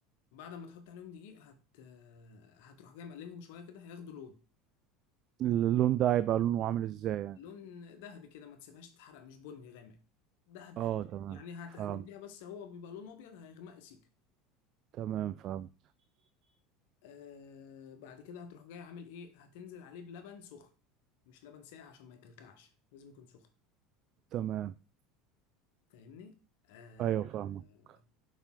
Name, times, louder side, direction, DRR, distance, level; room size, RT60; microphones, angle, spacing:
voice 1, 0.3-4.4 7.3-10.0 10.5-14.1 17.0-20.7 21.3-23.5 25.9-26.4 26.6-27.3 27.6-28.0, left 6 dB, 60° left, 1.3 m, -49 dB
voice 2, 5.4-7.4 10.8-11.4 11.8-12.0 14.9-15.7 24.3-24.7 27.0-27.6, right 12 dB, 45° right, 0.4 m, -31 dB
7.0 x 5.5 x 3.8 m
figure-of-eight pair, 70°, 0 cm